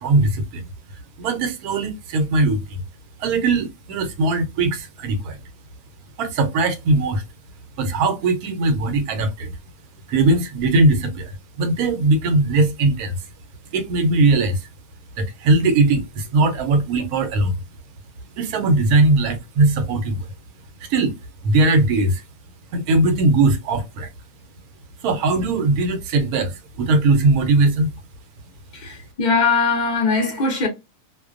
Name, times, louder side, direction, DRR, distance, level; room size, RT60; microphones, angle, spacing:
voice 1, 0.0-0.7 1.2-2.8 3.2-5.4 6.2-7.2 7.8-9.5 10.1-13.2 13.7-14.7 15.2-17.6 18.4-20.3 20.8-21.1 21.4-22.2 22.7-24.1 25.0-27.9, right 2 dB, 85° right, 1.1 m, -19 dB
voice 2, 28.7-30.7, left 4 dB, 50° left, 0.5 m, -20 dB
2.5 x 2.1 x 2.4 m
omnidirectional pair, 1.5 m